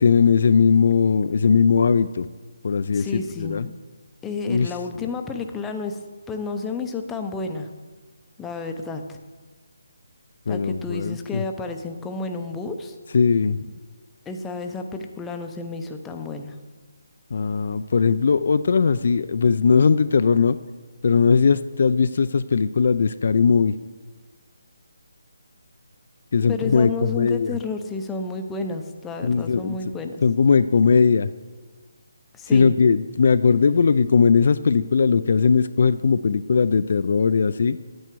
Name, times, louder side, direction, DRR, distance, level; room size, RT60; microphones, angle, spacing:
voice 1, 0.0-2.3 2.6-3.7 4.5-4.7 10.5-11.4 13.1-13.6 17.3-20.6 21.0-23.7 26.3-27.6 29.2-29.8 30.2-31.3 32.5-37.8, left 5 dB, 50° left, 13 dB, 0.3 m, -19 dB
voice 2, 2.9-3.7 4.2-6.0 6.3-7.7 8.4-9.2 10.5-12.9 14.3-16.6 26.5-30.2 32.3-32.7, left 4 dB, 10° left, 5 dB, 0.6 m, -31 dB
10.0 x 9.0 x 4.6 m, 1.3 s
hypercardioid pair, 165°, 0 cm